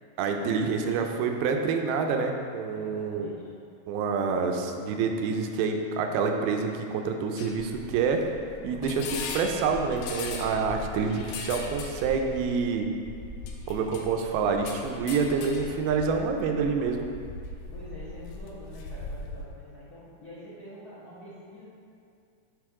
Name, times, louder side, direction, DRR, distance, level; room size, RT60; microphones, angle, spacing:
voice 1, 0.2-3.3 3.9-8.2 8.6-12.9 13.7-17.1, right 5 dB, 85° right, 4 dB, 2.6 m, -27 dB
voice 2, 2.7-3.5 8.6-9.0 17.7-21.7, equal, 50° left, -10 dB, 1.1 m, -46 dB
sound 1, 7.4-19.5, left 3 dB, 85° left, 2.4 m, -39 dB
9.8 x 3.8 x 4.8 m, 2.4 s
omnidirectional pair, 4.4 m